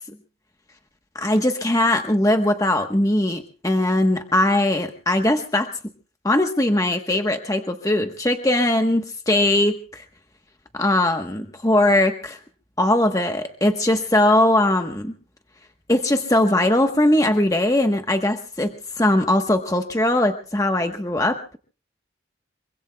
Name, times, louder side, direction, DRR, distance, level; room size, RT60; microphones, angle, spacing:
voice 1, 1.1-5.7 6.2-10.0 10.7-12.4 12.8-15.1 15.9-21.4, left 1 dB, 15° left, 5 dB, 1.1 m, -20 dB
25.5 x 24.5 x 2.3 m, 0.37 s
head